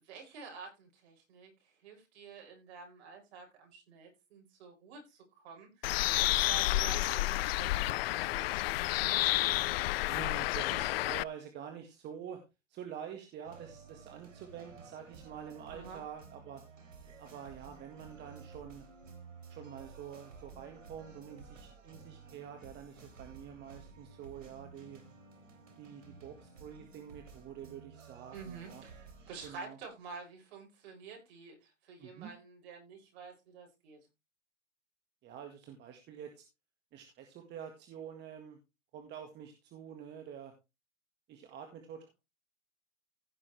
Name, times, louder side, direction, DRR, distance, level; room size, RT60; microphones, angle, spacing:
voice 1, 0.0-8.6 15.7-16.0 28.3-34.0, right 5 dB, 55° right, 1 dB, 6.9 m, -49 dB
Bird, 5.8-11.2, left 17 dB, 55° left, 0.4 m, -30 dB
voice 2, 10.1-12.4 12.7-16.6 17.2-18.8 19.5-25.0 25.8-28.8 29.4-29.8 32.0-32.3 35.2-36.4 36.9-38.6 38.9-40.5 41.3-42.1, right 8 dB, 30° right, 4 dB, 1.8 m, -47 dB
sound 1, 13.4-29.5, right 5 dB, 90° right, 3.4 m, -53 dB
16.0 x 6.8 x 3.4 m, 0.26 s
hypercardioid pair, 125°, 37 cm